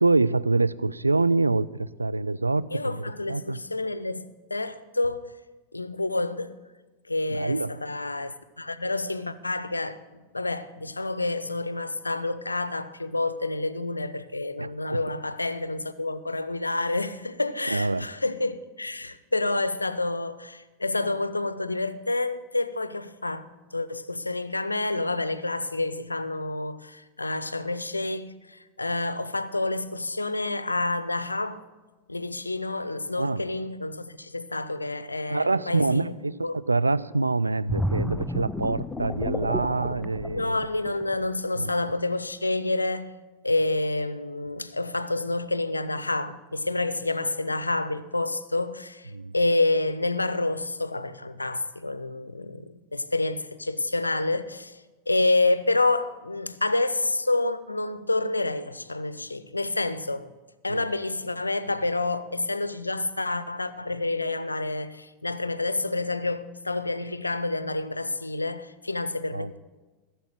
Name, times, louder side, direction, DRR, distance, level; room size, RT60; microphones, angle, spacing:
voice 1, 0.0-3.6 7.3-7.7 14.6-15.0 17.7-18.1 33.2-33.4 35.3-40.6 41.6-41.9 49.1-49.3 60.7-60.9 69.3-69.5, right 3 dB, 80° right, 0.3 m, -26 dB
voice 2, 2.7-4.2 4.5-5.3 5.7-6.6 7.1-31.7 32.1-36.6 40.3-43.1 43.4-60.3 60.6-69.6, left 2 dB, 80° left, 0.6 m, -28 dB
sound 1, 37.7-41.3 41.7-41.9, equal, 5° left, 0.6 m, -31 dB
15.5 x 7.1 x 7.5 m
figure-of-eight pair, 90°, 0 cm